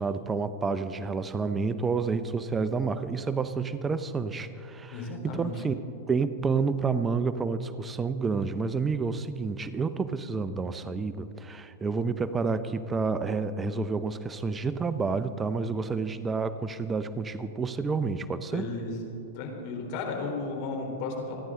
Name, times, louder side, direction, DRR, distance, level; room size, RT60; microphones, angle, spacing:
voice 1, 0.0-5.8 6.1-18.7, right 4 dB, 15° right, 12 dB, 0.6 m, -29 dB
voice 2, 4.9-5.5 18.5-19.1 19.3-21.4, left 3 dB, 50° left, 2 dB, 3.7 m, -34 dB
28.0 x 10.5 x 3.7 m, 3.0 s
hypercardioid pair, 115°, 0 cm